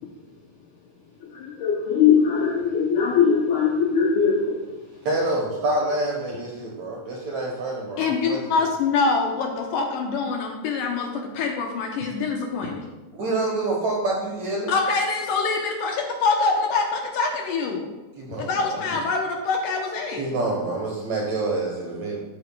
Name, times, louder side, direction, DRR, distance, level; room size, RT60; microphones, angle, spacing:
voice 1, 1.3-4.6, left 6 dB, 90° left, 0 dB, 1.7 m, -20 dB
voice 2, 5.1-8.4 13.1-14.7 18.2-18.9 20.2-22.2, right 2 dB, 70° right, -2 dB, 1.7 m, -27 dB
voice 3, 8.0-12.9 14.7-17.9 18.4-20.2, left 4 dB, 75° left, 1 dB, 2.2 m, -25 dB
11.0 x 8.4 x 2.2 m, 1.1 s
omnidirectional pair, 4.4 m